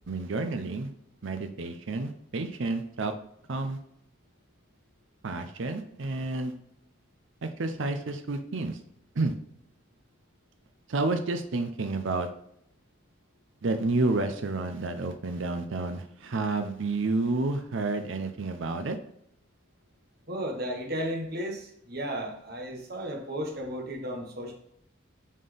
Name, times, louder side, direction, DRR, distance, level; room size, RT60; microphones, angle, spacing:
voice 1, 0.1-0.9 1.2-3.1 3.5-3.8 5.2-6.5 7.4-8.8 9.2-9.3 10.9-12.3 13.6-19.0, right 3 dB, 65° right, 7 dB, 0.6 m, -30 dB
voice 2, 20.3-24.5, equal, 45° right, 1 dB, 1.3 m, -34 dB
7.4 x 4.3 x 3.4 m, 0.71 s
head